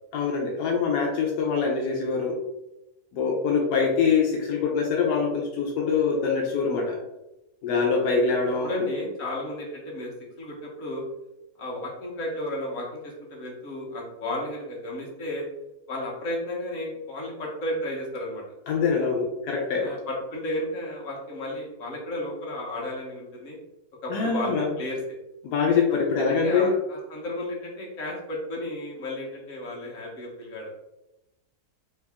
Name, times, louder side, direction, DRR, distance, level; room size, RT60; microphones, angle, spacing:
voice 1, 0.1-2.4 3.1-7.0 7.6-8.7 18.7-19.9 24.1-24.7 25.4-26.7, left 5 dB, 85° left, 0 dB, 1.2 m, -24 dB
voice 2, 8.6-10.1 10.4-11.0 11.6-15.4 15.9-18.4 18.9-19.0 19.8-23.6 24.0-25.0 25.9-30.7, left 1 dB, 55° left, -3 dB, 1.4 m, -33 dB
3.4 x 2.8 x 3.4 m, 0.93 s
omnidirectional pair, 1.7 m